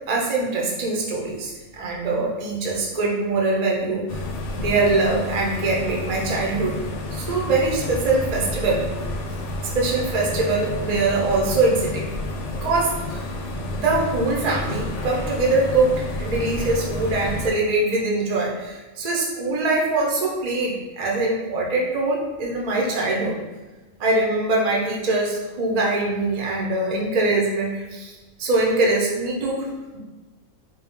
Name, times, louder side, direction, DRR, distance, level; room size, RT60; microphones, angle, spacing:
voice 1, 0.1-4.2 4.5-6.8 7.1-8.8 9.6-12.1 12.6-13.2 13.7-23.4 24.0-29.7, right 2 dB, 40° right, -2 dB, 0.7 m, -23 dB
sound 1, 4.1-17.5, left 1 dB, 70° left, 0.9 m, -30 dB
4.2 x 2.3 x 3.5 m, 1.2 s
omnidirectional pair, 1.3 m